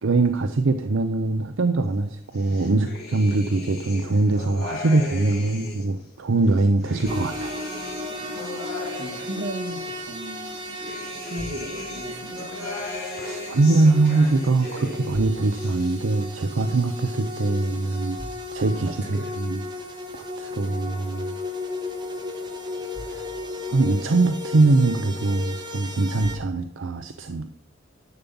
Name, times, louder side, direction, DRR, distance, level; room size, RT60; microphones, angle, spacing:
voice 1, 0.0-7.7 13.2-18.2 18.5-19.6 20.1-21.3 23.0-23.3 23.7-27.5, right 3 dB, 75° right, 8 dB, 0.6 m, -22 dB
sound 1, 2.3-6.0 6.4-9.9 10.3-15.2 15.4-16.3 16.6-17.4, left 3 dB, 55° left, 3.6 m, -38 dB
sound 2, 7.0-26.3, left 1 dB, 25° right, 1.6 m, -35 dB
voice 2, 8.3-10.8 11.2-12.8 18.8-19.4, right 1 dB, 60° right, 3 dB, 1.9 m, -36 dB
10.5 x 7.1 x 5.4 m, 0.77 s
head